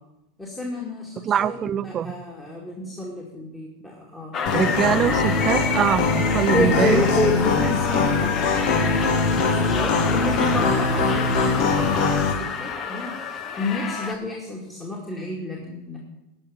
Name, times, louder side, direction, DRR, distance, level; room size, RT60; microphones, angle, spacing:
voice 1, 0.4-4.3 6.5-13.1 13.6-16.0, left 2 dB, 10° left, -3 dB, 2.4 m, -29 dB
voice 2, 1.2-2.2 4.5-7.0, right 9 dB, 35° right, 17 dB, 0.4 m, -23 dB
sound 1, 4.3-14.1, left 6 dB, 35° left, 1.1 m, -29 dB
sound 2, 4.5-12.3, left 4 dB, 55° left, 1.6 m, -22 dB
13.0 x 5.4 x 8.8 m, 0.95 s
hypercardioid pair, 95°, 0 cm